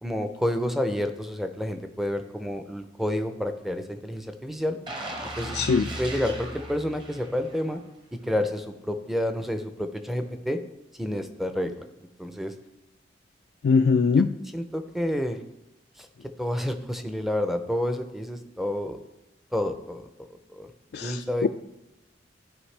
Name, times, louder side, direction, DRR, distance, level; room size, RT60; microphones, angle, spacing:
voice 1, 0.0-4.8 5.4-5.6 6.0-7.8 8.3-10.6 11.0-11.9 12.2-12.5 14.5-15.4 16.0-16.1 16.4-19.0 19.5-20.1 20.5-20.7 21.0-21.5, left 1 dB, ahead, 7 dB, 0.6 m, -29 dB
sound 1, 4.9-7.8 8.2-8.4, right 1 dB, 25° right, 1.0 m, -37 dB
voice 2, 5.5-5.9 13.6-14.3 20.9-21.5, left 5 dB, 60° left, 5 dB, 0.3 m, -22 dB
14.0 x 5.2 x 3.3 m, 0.91 s
head